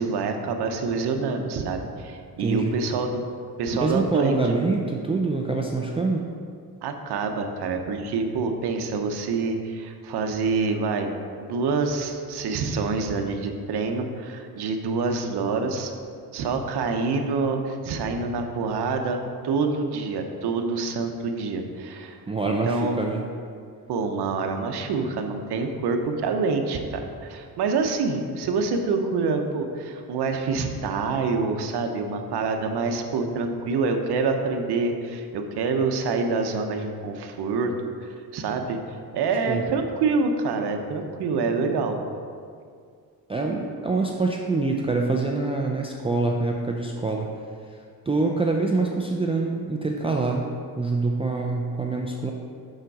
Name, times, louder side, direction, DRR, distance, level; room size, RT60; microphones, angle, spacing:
voice 1, 0.0-3.2 3.6-4.6 6.8-11.1 11.4-15.9 16.3-19.2 19.4-22.2 22.4-23.1 23.9-37.7 38.0-38.8 39.1-42.0, right 4 dB, 65° right, 4 dB, 0.9 m, -26 dB
voice 2, 2.4-2.7 3.8-6.3 22.3-23.2 39.5-39.6 43.3-47.3 47.7-50.4 50.8-52.3, right 3 dB, 15° right, 0 dB, 0.4 m, -25 dB
6.5 x 5.8 x 4.8 m, 2.2 s
cardioid pair, 120°, 42 cm